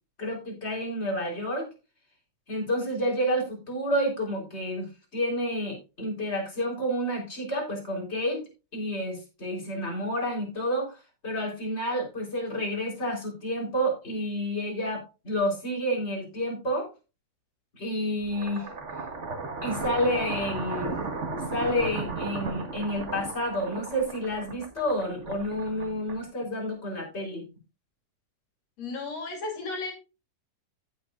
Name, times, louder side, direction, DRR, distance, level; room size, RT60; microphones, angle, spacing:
voice 1, 0.2-1.7 2.5-8.4 8.7-11.0 11.2-16.9 17.7-18.7 19.6-21.0 21.5-27.5, equal, 20° left, 0 dB, 3.9 m, -29 dB
sound 1, 18.2-26.5, right 3 dB, 50° right, 0.8 m, -35 dB
voice 2, 28.8-29.9, left 3 dB, 55° left, 3 dB, 3.8 m, -34 dB
15.0 x 7.1 x 2.5 m, 0.29 s
omnidirectional pair, 3.7 m